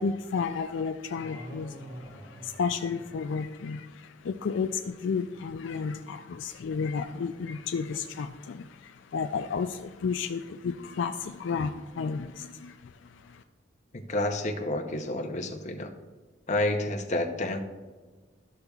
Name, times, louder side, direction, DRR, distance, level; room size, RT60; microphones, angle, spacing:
voice 1, 0.0-13.4, left 5 dB, 70° left, 7 dB, 0.4 m, -32 dB
sound 1, 1.1-3.7, equal, 25° right, 1.5 m, -46 dB
voice 2, 13.9-15.9 16.5-17.6, left 1 dB, 40° left, 3 dB, 0.7 m, -29 dB
13.0 x 6.7 x 2.4 m, 1.4 s
head